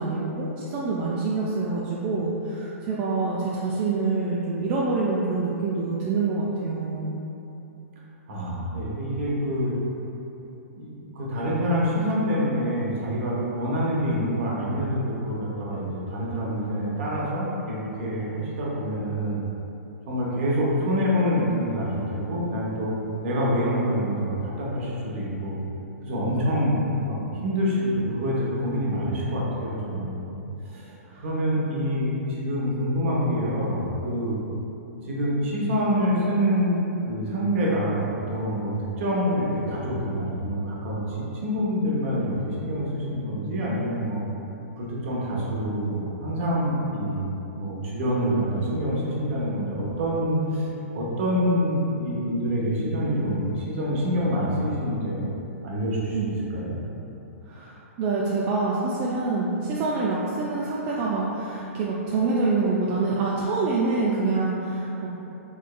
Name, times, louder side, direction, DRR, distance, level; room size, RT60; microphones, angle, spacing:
voice 1, 0.0-7.2 31.1-31.2 56.1-56.3 57.5-65.1, right 3 dB, 35° right, -5 dB, 0.3 m, -26 dB
voice 2, 8.3-9.8 10.8-10.9 11.1-19.4 20.1-22.9 23.2-25.5 26.0-30.4 30.7-30.9 31.2-34.4 35.1-38.0 38.3-41.0 41.4-44.2 44.8-50.7 50.9-55.2 55.6-56.8, equal, 55° right, -5 dB, 0.9 m, -26 dB
3.6 x 3.0 x 2.2 m, 3.0 s
hypercardioid pair, 130°, 8 cm